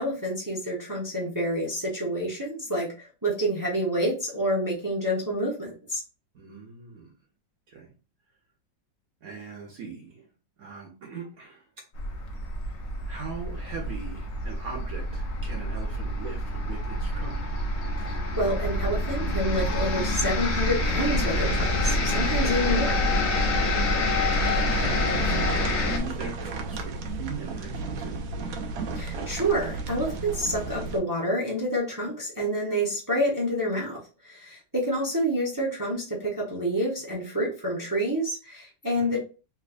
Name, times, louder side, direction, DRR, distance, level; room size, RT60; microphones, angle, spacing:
voice 1, 0.0-6.0 18.0-23.0 28.9-39.2, equal, 15° right, 0.6 m, -28 dB
voice 2, 6.3-7.1 7.7-7.9 9.2-10.3 10.6-11.8 13.1-17.4 24.4-25.6 25.9-28.2 39.0-39.2, right 4 dB, 60° right, 1.0 m, -40 dB
sound 1, 11.9-26.0, left 1 dB, 60° left, 0.7 m, -27 dB
sound 2, 24.3-31.0, right 3 dB, 85° right, 0.7 m, -34 dB
3.5 x 3.0 x 2.5 m
omnidirectional pair, 2.0 m